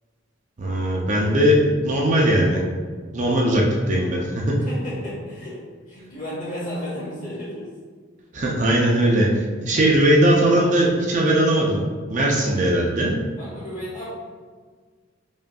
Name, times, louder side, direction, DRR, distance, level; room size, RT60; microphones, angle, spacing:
voice 1, 0.6-2.6 3.1-4.6 8.3-11.8 12.1-13.1, right 1 dB, 35° right, -2 dB, 0.4 m, -19 dB
voice 2, 4.5-5.6 5.9-7.7 13.4-14.1, equal, 40° left, -6 dB, 1.5 m, -33 dB
4.9 x 2.6 x 2.3 m, 1.6 s
head